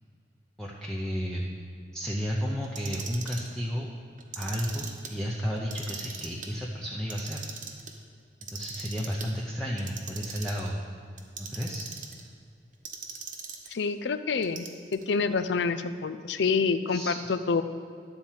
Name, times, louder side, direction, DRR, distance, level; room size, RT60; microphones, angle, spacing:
voice 1, 0.6-1.4 1.9-3.9 4.4-7.5 8.5-10.8 11.4-11.9 16.9-17.2, equal, 5° left, -4 dB, 0.7 m, -32 dB
Clock, 2.6-3.5 4.2-5.1 5.6-6.5 7.0-7.9 8.4-9.3 9.8-10.7 11.2-12.2 12.9-13.8 14.4-15.0, right 6 dB, 45° right, 0.9 m, -40 dB
voice 2, 13.7-14.7 14.9-17.6, left 4 dB, 70° left, 11 dB, 0.5 m, -27 dB
11.5 x 4.3 x 7.4 m, 2.4 s
head